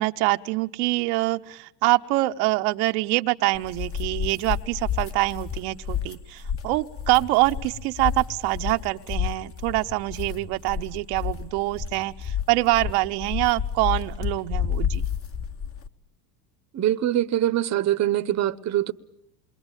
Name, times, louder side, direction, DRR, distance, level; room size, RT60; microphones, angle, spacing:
voice 1, 0.0-15.1, right 20 dB, 70° right, 1.0 m, -25 dB
sound 1, 3.5-15.9, left 8 dB, 30° left, 1.2 m, -31 dB
voice 2, 16.7-18.9, right 12 dB, 35° right, 0.9 m, -23 dB
27.5 x 22.5 x 9.0 m
supercardioid pair, 100°, 48 cm